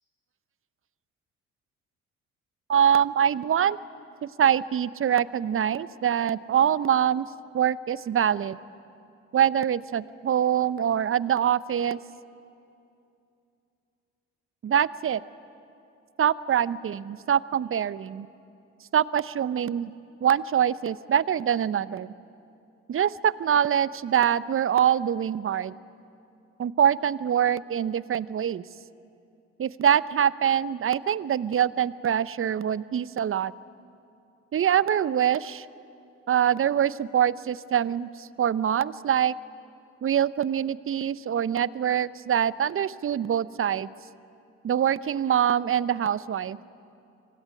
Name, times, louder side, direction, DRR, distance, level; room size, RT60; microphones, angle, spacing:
voice 1, 2.7-3.8 4.4-7.3 7.5-8.6 9.3-12.0 14.6-15.2 16.2-18.3 18.9-19.9 20.2-22.1 22.9-25.7 26.6-28.6 29.6-33.5 34.5-35.7 36.3-39.3 40.0-43.9 44.6-46.6, right 9 dB, 35° right, 18 dB, 0.8 m, -24 dB
25.0 x 17.5 x 9.6 m, 2.6 s
hypercardioid pair, 50°, 36 cm